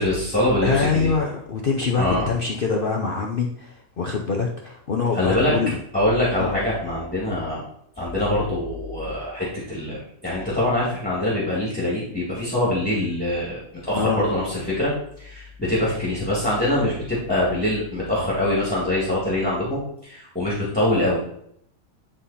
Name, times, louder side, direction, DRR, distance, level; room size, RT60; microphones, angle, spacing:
voice 1, 0.0-1.1 2.0-2.3 5.1-5.5 5.9-7.6 8.0-14.9 15.2-21.2, left 1 dB, 5° left, -7 dB, 2.0 m, -24 dB
voice 2, 0.6-5.8 6.4-6.5 13.9-14.3, left 4 dB, 50° left, 0 dB, 0.7 m, -24 dB
10.0 x 3.8 x 4.1 m, 0.71 s
omnidirectional pair, 1.6 m